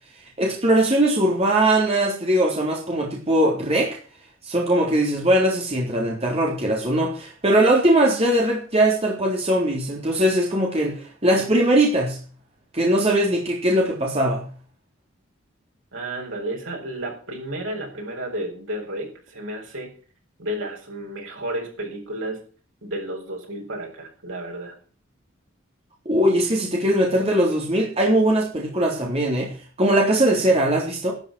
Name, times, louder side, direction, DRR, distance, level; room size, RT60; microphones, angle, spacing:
voice 1, 0.4-4.0 4.5-12.2 12.7-14.4 26.1-29.5 29.8-31.1, right 1 dB, 30° right, -1 dB, 3.7 m, -20 dB
voice 2, 15.9-19.9 20.4-22.4 22.8-24.7, right 1 dB, 75° right, 0 dB, 7.8 m, -32 dB
12.5 x 12.0 x 6.4 m, 0.41 s
head